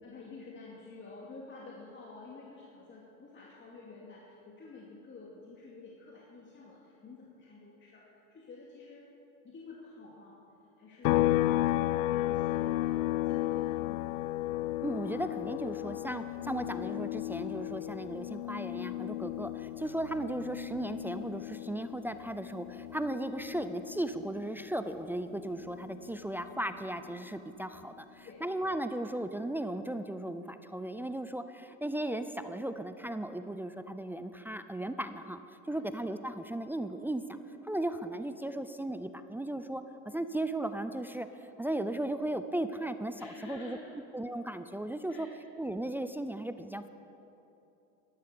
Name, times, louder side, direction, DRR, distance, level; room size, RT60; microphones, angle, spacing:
voice 1, 0.0-9.1 9.4-10.4 10.8-11.4 11.7-14.2 28.2-28.4 35.7-35.9 43.2-44.0 45.1-45.5, left 3 dB, 30° left, -4 dB, 2.6 m, -49 dB
sound 1, 11.0-24.6 24.9-27.1, left 16 dB, 80° left, 0.5 m, -34 dB
voice 2, 14.8-35.4 35.7-37.4 37.6-41.3 41.6-43.8 44.1-45.3 45.6-46.9, right 1 dB, 5° right, 10 dB, 0.5 m, -36 dB
12.5 x 12.0 x 6.9 m, 2.8 s
hypercardioid pair, 90°, 39 cm